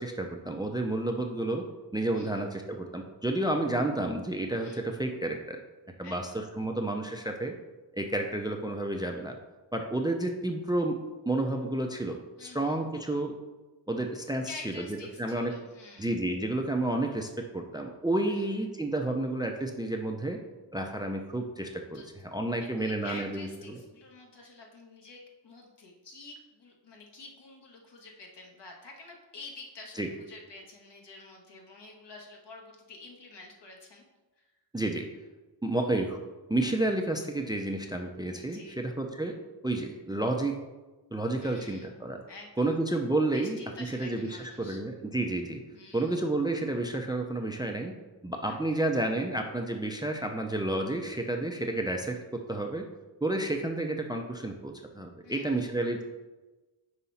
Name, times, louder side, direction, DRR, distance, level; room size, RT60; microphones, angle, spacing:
voice 1, 0.0-1.7 1.9-5.6 6.0-7.5 7.9-9.4 9.7-11.0 11.3-13.3 13.9-14.5 15.2-15.5 16.0-20.4 20.7-22.0 22.3-23.8 30.0-30.1 34.7-35.1 35.6-36.2 36.5-39.4 39.6-40.6 41.1-42.2 42.6-43.6 44.0-45.6 45.9-47.9 48.2-52.8 53.2-56.1, right 2 dB, 10° right, 4 dB, 0.5 m, -30 dB
voice 2, 6.0-6.5 12.4-12.8 14.4-16.1 18.3-18.5 21.9-22.1 22.5-34.0 38.3-38.8 41.4-41.9 42.3-42.7 43.3-44.8 45.7-46.2 48.5-48.8 55.2-55.7, left 3 dB, 60° left, 0 dB, 1.5 m, -48 dB
5.5 x 4.7 x 4.2 m, 1.2 s
cardioid pair, 70°, 46 cm